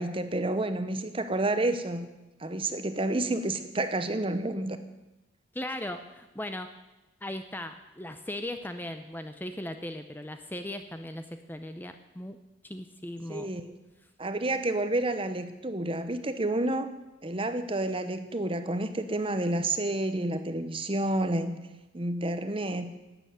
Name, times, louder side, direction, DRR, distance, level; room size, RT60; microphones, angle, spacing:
voice 1, 0.0-2.1 2.4-4.8 13.3-13.7 14.2-16.9 17.2-21.6 21.9-22.9, right 2 dB, 25° right, 10 dB, 0.9 m, -29 dB
voice 2, 5.5-6.7 7.2-12.4 12.6-13.5, left 1 dB, 10° left, 8 dB, 0.6 m, -38 dB
12.0 x 8.9 x 9.3 m, 1.0 s
head